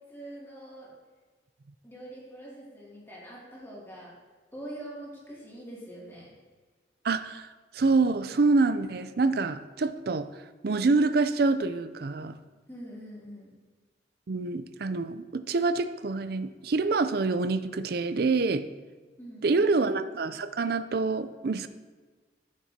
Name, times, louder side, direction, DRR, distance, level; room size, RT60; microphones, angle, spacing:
voice 1, 0.1-0.9 1.8-4.1 4.5-6.3 12.7-13.5 19.2-20.0, right 1 dB, 15° left, -6 dB, 2.5 m, -44 dB
voice 2, 7.0-7.5 7.7-10.3 10.6-12.4 14.3-18.7 19.4-21.7, right 3 dB, 55° right, 12 dB, 0.5 m, -26 dB
14.0 x 7.4 x 2.8 m, 1.4 s
head